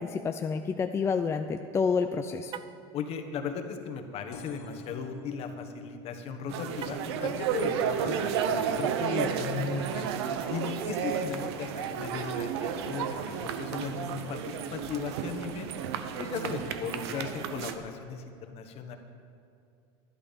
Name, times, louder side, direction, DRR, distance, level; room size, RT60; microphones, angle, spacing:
voice 1, 0.0-2.5, left 5 dB, 20° left, 6 dB, 0.4 m, -29 dB
Car, 2.4-2.9 6.7-7.2, right 9 dB, 35° right, 0.5 m, -43 dB
voice 2, 2.9-10.1 10.5-15.8 16.2-19.0, left 6 dB, 50° left, 6 dB, 1.3 m, -37 dB
sound 1, 4.3-11.5 12.0-12.5 13.4-13.5 13.7-13.8 14.0-14.1, left 4 dB, 80° left, 2.3 m, -50 dB
sound 2, 6.5-17.7, right 7 dB, 80° right, 0.8 m, -32 dB
11.5 x 11.0 x 5.3 m, 2.5 s
supercardioid pair, 115°, 14 cm